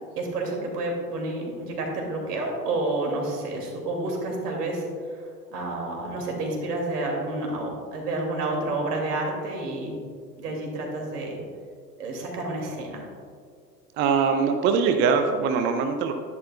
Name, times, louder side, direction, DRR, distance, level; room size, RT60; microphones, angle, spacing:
voice 1, 0.2-10.0 10.4-11.4 12.0-13.0, right 2 dB, 70° right, 0 dB, 2.5 m, -30 dB
voice 2, 14.0-16.1, right 5 dB, 25° right, 6 dB, 0.5 m, -22 dB
11.0 x 10.5 x 2.3 m, 2.1 s
figure-of-eight pair, 95°, 49 cm